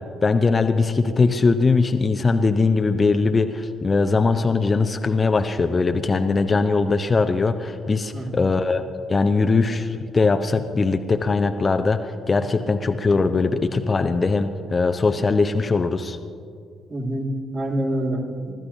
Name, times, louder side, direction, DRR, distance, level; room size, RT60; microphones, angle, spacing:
voice 1, 0.0-8.8 9.1-16.2, left 4 dB, 30° left, 7 dB, 0.7 m, -21 dB
voice 2, 8.1-8.5 16.9-18.5, right 1 dB, 35° right, -1 dB, 2.7 m, -27 dB
30.0 x 14.0 x 2.8 m, 2.3 s
figure-of-eight pair, 45°, 0 cm